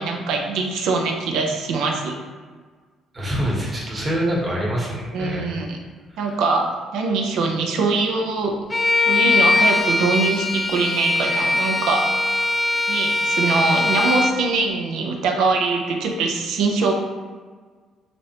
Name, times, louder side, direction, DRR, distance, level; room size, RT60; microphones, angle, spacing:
voice 1, 0.0-2.1 5.1-5.8 6.2-8.6 9.1-12.1 12.9-16.9, right 3 dB, 80° right, 2 dB, 0.5 m, -23 dB
voice 2, 3.1-5.6 6.1-6.4, equal, 25° right, -4 dB, 1.1 m, -25 dB
Bowed string instrument, 8.7-14.4, left 2 dB, 25° left, 0.4 m, -21 dB
5.1 x 2.1 x 2.8 m, 1.5 s
cardioid pair, 90°, 0 cm